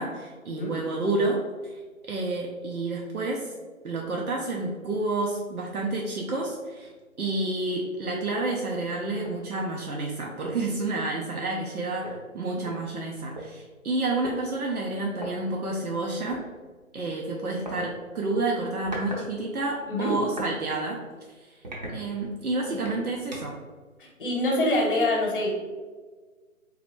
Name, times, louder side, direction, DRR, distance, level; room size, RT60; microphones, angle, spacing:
voice 1, 0.0-1.4 2.1-3.5 3.8-6.9 7.2-16.4 16.9-21.0 21.4-21.6 21.9-23.5, right 2 dB, 80° right, -2 dB, 0.8 m, -29 dB
sound 1, 9.2-9.4 9.9-10.0 10.4-10.7 11.7-11.8 12.0-13.5 14.2-14.4 15.1-15.3 16.3-16.5 17.7-17.9 18.6-19.3 19.6-20.5 21.0-21.2 21.6-22.4 22.9-23.6, right 1 dB, 30° right, 0.7 m, -39 dB
voice 2, 19.9-20.2 22.6-22.8 24.0-25.5, left 1 dB, 40° left, 0 dB, 1.0 m, -25 dB
3.9 x 3.3 x 3.0 m, 1.4 s
figure-of-eight pair, 150°, 43 cm